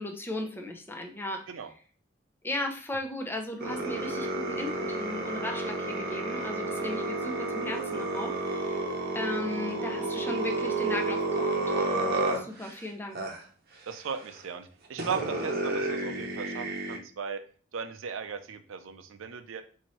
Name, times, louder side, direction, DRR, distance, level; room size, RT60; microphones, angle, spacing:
voice 1, 0.0-1.4 2.4-8.8 9.1-13.2, left 1 dB, 10° left, 4 dB, 0.5 m, -36 dB
sound 1, 3.6-12.7 13.1-13.4 14.4-14.5 15.0-17.0, right 2 dB, 55° right, 0.8 m, -31 dB
voice 2, 13.9-17.4 17.7-19.6, right 6 dB, 85° right, 9 dB, 0.5 m, -37 dB
4.3 x 2.7 x 3.1 m, 0.42 s
head